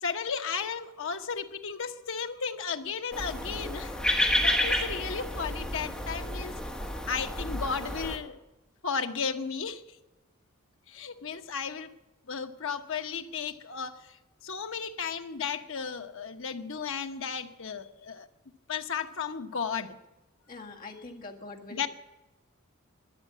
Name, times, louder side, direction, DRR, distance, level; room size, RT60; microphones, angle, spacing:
voice 1, 0.0-4.0 4.4-6.5 7.1-8.4 8.8-10.0 10.9-11.9 12.3-18.3 18.7-20.0 21.7-21.9, left 6 dB, 65° left, 7 dB, 1.0 m, -34 dB
sound 1, 3.1-8.2, left 1 dB, 5° left, 1.8 m, -30 dB
voice 2, 10.9-11.4 20.5-21.9, left 3 dB, 40° left, 0 dB, 1.8 m, -45 dB
12.5 x 10.5 x 8.5 m, 1.0 s
head